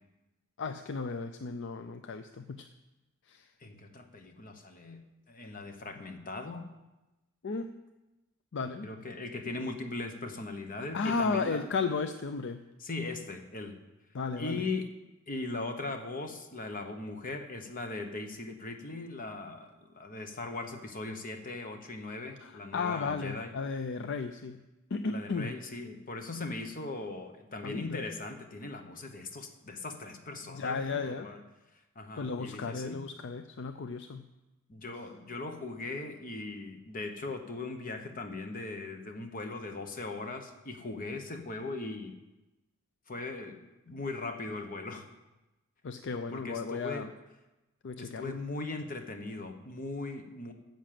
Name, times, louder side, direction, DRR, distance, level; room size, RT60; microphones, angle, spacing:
voice 1, 0.6-2.7 3.3-3.5 7.4-7.7 8.5-8.9 10.9-12.6 14.1-14.6 22.4-24.6 24.9-25.5 27.6-28.0 30.5-31.3 32.2-34.3 45.8-47.1 47.8-48.3, left 4 dB, 55° left, 9 dB, 0.5 m, -34 dB
voice 2, 3.6-6.7 8.8-11.6 12.8-13.8 14.4-14.9 15.3-23.5 25.1-31.4 31.9-33.1 34.7-42.2 43.1-45.1 46.3-47.1 48.0-50.5, left 3 dB, 40° left, 5 dB, 1.1 m, -39 dB
10.0 x 7.4 x 7.6 m, 1.0 s
head